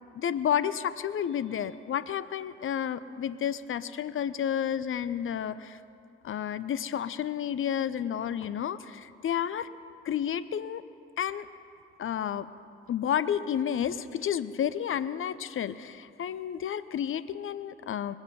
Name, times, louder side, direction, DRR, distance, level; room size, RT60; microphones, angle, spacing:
voice 1, 0.1-5.8 6.2-9.7 10.0-10.8 11.2-11.5 12.0-12.5 12.9-18.1, left 9 dB, 40° left, 15 dB, 0.7 m, -31 dB
21.5 x 8.0 x 5.4 m, 2.5 s
hypercardioid pair, 50°, 32 cm